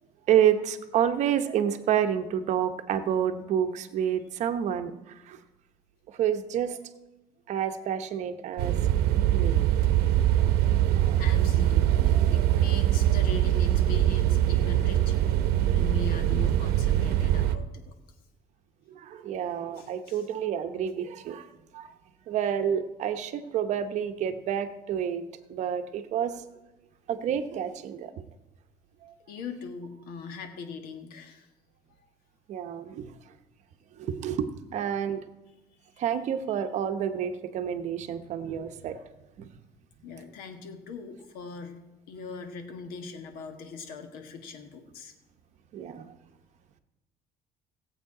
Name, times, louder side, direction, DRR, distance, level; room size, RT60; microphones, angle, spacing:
voice 1, 0.3-5.4 6.1-6.8 7.5-8.8 9.3-9.6 10.4-10.5 11.0-11.5 19.0-21.5 21.7-21.9 22.3-25.2 25.5-26.4 27.1-28.1 29.0-29.1 32.5-33.2 34.0-35.2 36.0-39.0 39.4-39.5 45.7-46.1, right 9 dB, 50° right, 8 dB, 0.8 m, -29 dB
sound 1, 8.6-17.6, right 12 dB, 85° right, 0.8 m, -23 dB
voice 2, 11.2-15.2 15.7-17.9 19.7-20.2 29.3-31.5 32.0-32.1 35.9-36.0 40.0-41.8 42.1-45.1, left 4 dB, 70° left, 6 dB, 1.6 m, -40 dB
17.5 x 8.1 x 4.9 m, 1.0 s
cardioid pair, 165°, 16 cm